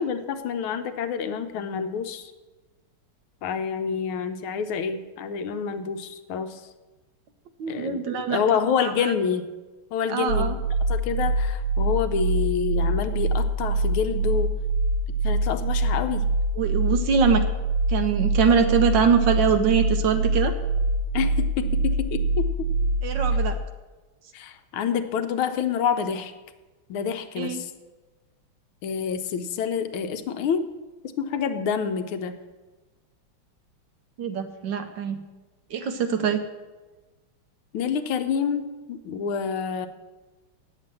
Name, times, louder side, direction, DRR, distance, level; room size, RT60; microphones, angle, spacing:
voice 1, 0.0-2.3 3.4-6.6 7.7-9.5 9.9-10.5 10.9-14.5 15.2-16.2 21.1-22.7 24.3-26.3 26.9-27.7 28.8-30.6 31.2-32.3 37.7-39.9, left 7 dB, 80° left, 9 dB, 1.5 m, -27 dB
voice 2, 7.6-8.4 8.8-9.1 10.1-10.5 16.6-17.4 17.9-20.5 23.0-23.6 27.4-27.6 34.2-35.2 35.7-36.4, right 6 dB, 70° right, 8 dB, 1.3 m, -23 dB
sound 1, 10.3-23.6, right 2 dB, 85° right, 1.6 m, -24 dB
9.0 x 7.5 x 7.5 m, 1.2 s
omnidirectional pair, 2.3 m